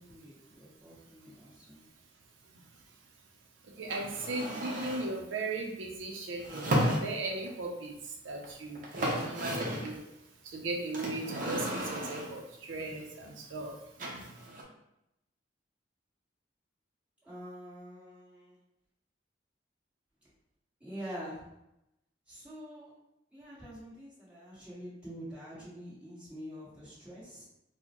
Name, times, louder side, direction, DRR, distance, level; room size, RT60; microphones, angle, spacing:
voice 1, 0.0-1.8 17.2-18.6 20.8-21.5 22.3-22.9 23.3-27.4, equal, 5° right, -10 dB, 1.5 m, -46 dB
voice 2, 3.8-7.9 8.2-10.0 10.5-12.4 12.7-13.7, right 2 dB, 85° right, 1 dB, 0.5 m, -37 dB
sound 1, 3.9-5.2 6.4-7.5 8.4-8.5 8.7-10.0 10.9-12.4 14.0-14.6, equal, 45° right, 0.7 m, -33 dB
4.2 x 2.1 x 2.9 m, 0.85 s
head